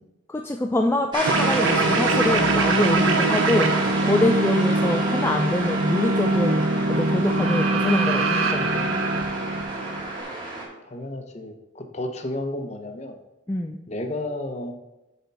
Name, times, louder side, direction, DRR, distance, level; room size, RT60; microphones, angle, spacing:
voice 1, 0.3-6.6 7.0-9.0 13.5-13.8, left 1 dB, 10° left, 2 dB, 0.3 m, -25 dB
sound 1, 1.1-10.7, right 2 dB, 20° right, 1.7 m, -31 dB
sound 2, 1.2-10.2, right 2 dB, 85° right, 0.7 m, -23 dB
voice 2, 10.9-13.2 13.9-14.7, left 1 dB, 35° left, 6 dB, 0.7 m, -32 dB
6.7 x 4.5 x 5.2 m, 0.97 s
head